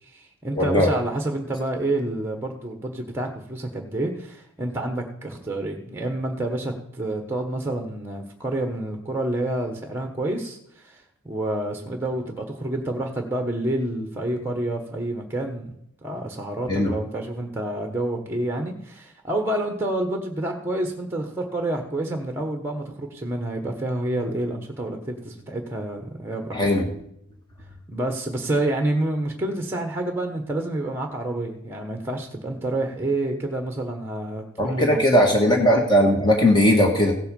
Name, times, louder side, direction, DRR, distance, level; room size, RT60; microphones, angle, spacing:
voice 1, 0.0-26.7 27.9-35.3, right 1 dB, 10° right, 4 dB, 1.2 m, -28 dB
voice 2, 0.5-0.9 16.7-16.9 26.5-26.8 34.6-37.1, equal, 20° left, 1 dB, 1.6 m, -18 dB
16.0 x 8.0 x 5.4 m, 0.71 s
head